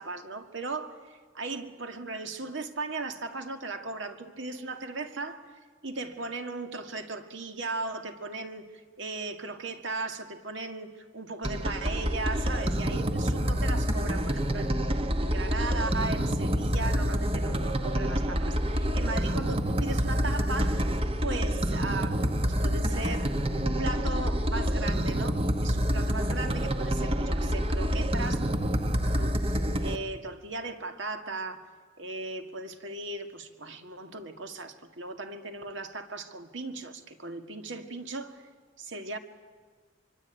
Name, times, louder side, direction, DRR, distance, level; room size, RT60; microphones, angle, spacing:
voice 1, 0.0-5.4 5.8-8.7 9.0-14.8 15.2-20.9 21.2-28.4 29.0-29.4 29.8-31.6 32.0-38.5 38.8-39.2, right 3 dB, 65° right, 2.0 m, -37 dB
sound 1, 11.4-30.0, equal, 30° right, 1.2 m, -27 dB
24.5 x 24.0 x 9.1 m
head